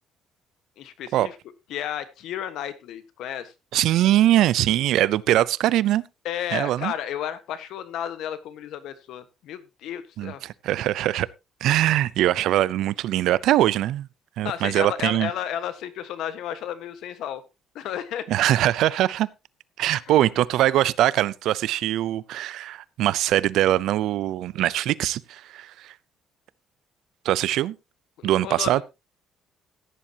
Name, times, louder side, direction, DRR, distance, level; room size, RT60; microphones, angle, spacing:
voice 1, 0.8-1.3 1.7-3.5 6.2-10.4 14.4-17.4 17.7-18.3 20.1-20.2 28.2-28.8, left 10 dB, 70° left, 1.4 m, -32 dB
voice 2, 3.7-6.0 6.5-6.9 10.2-11.3 11.6-14.1 14.4-15.3 18.3-19.3 19.8-25.9 27.2-27.7 28.2-28.8, right 13 dB, 70° right, 0.6 m, -22 dB
15.5 x 10.0 x 2.9 m
cardioid pair, 140°, 0 cm